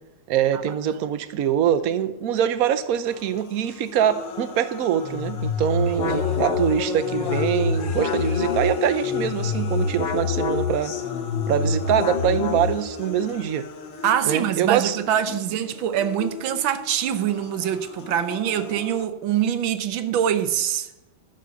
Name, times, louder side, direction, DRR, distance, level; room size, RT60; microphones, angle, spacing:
voice 1, 0.3-10.9 11.5-13.7 14.2-15.0, right 9 dB, 65° right, 0.9 m, -24 dB
sound 1, 3.0-19.0, left 8 dB, 75° left, 1.7 m, -34 dB
sound 2, 5.0-13.1, left 4 dB, 45° left, 0.9 m, -27 dB
voice 2, 5.9-6.5 14.0-20.9, right 10 dB, 85° right, 1.6 m, -24 dB
11.0 x 6.3 x 6.9 m
omnidirectional pair, 2.1 m